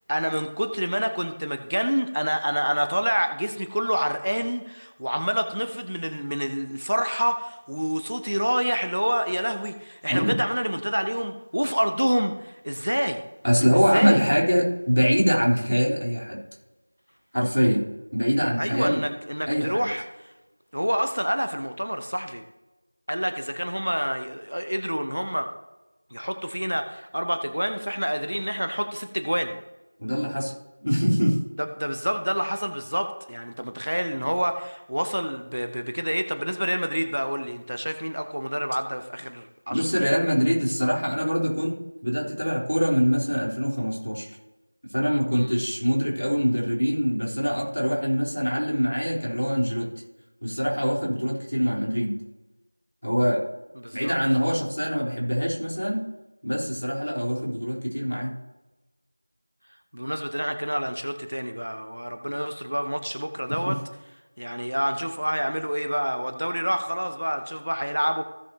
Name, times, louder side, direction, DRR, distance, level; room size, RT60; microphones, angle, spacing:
voice 1, 0.1-13.2 13.7-14.2 18.6-20.3 20.7-22.5 23.1-25.5 26.1-29.6 31.6-40.1 45.3-45.5 53.8-54.1 59.9-63.8 64.4-68.2, equal, 30° right, 7 dB, 0.6 m, -27 dB
voice 2, 13.4-16.4 17.3-17.8 18.1-19.0 19.5-19.9 30.0-30.5 30.8-31.4 39.7-41.8 42.0-44.3 44.9-49.9 50.4-52.1 53.0-53.4 53.9-56.0 56.4-58.3 63.6-63.8, equal, 60° left, -3 dB, 3.8 m, -23 dB
16.5 x 6.7 x 2.8 m, 1.1 s
figure-of-eight pair, 180°, 0 cm